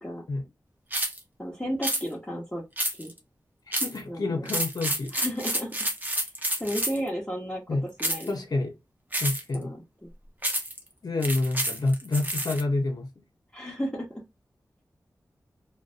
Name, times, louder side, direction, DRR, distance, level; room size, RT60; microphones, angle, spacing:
sound 1, 0.9-1.2 1.8-2.0 2.8-3.2 3.7-4.0 4.4-7.1 8.0-8.3 9.1-9.5 10.4-10.8 11.2-12.6, right 1 dB, 25° right, 0.6 m, -29 dB
voice 1, 1.4-2.6 3.0-3.1 4.1-4.5 5.1-5.7 6.6-8.3 9.5-10.1 13.5-14.1, equal, 15° left, 0.8 m, -33 dB
voice 2, 3.7-5.1 7.7-7.9 8.3-8.7 9.2-9.8 11.0-13.1, left 2 dB, 60° left, 0.6 m, -28 dB
2.4 x 2.1 x 2.4 m
cardioid pair, 45°, 7 cm